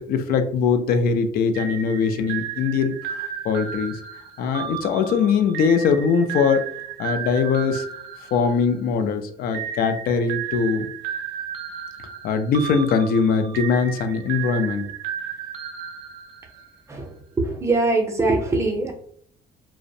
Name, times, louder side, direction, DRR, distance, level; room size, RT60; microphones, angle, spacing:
voice 1, 0.0-4.0 4.4-6.6 7.0-7.9 8.3-10.9 12.2-14.9, left 5 dB, 65° left, 7 dB, 0.4 m, -21 dB
sound 1, 1.5-9.0 9.5-16.8, right 8 dB, 85° right, 0.4 m, -34 dB
voice 2, 16.9-18.9, right 2 dB, 15° right, 2 dB, 0.5 m, -22 dB
2.5 x 2.0 x 2.6 m, 0.62 s
cardioid pair, 110°, 17 cm